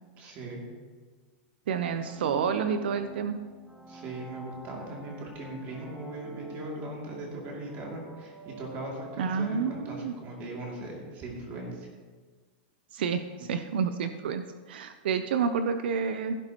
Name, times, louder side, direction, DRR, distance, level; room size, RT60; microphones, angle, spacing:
voice 1, 0.2-0.6 3.9-11.7, right 2 dB, 30° right, -2 dB, 2.8 m, -39 dB
sound 1, 1.7-10.3, right 1 dB, 5° right, 0.8 m, -47 dB
voice 2, 1.7-3.4 9.2-10.1 12.9-16.4, right 6 dB, 75° right, 9 dB, 0.6 m, -29 dB
15.5 x 10.5 x 3.0 m, 1.5 s
supercardioid pair, 165°, 5 cm